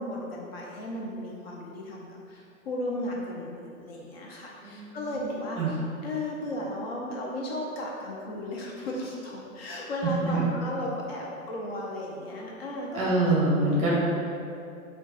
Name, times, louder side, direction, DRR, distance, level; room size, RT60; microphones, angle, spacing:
voice 1, 0.0-13.3 13.7-13.9, left 1 dB, 45° left, -3 dB, 0.5 m, -35 dB
voice 2, 4.6-5.1 5.6-5.7 10.3-10.4 12.9-13.9, right 2 dB, 30° right, -6 dB, 0.7 m, -25 dB
2.3 x 2.2 x 3.8 m, 2.5 s
figure-of-eight pair, 110°, 42 cm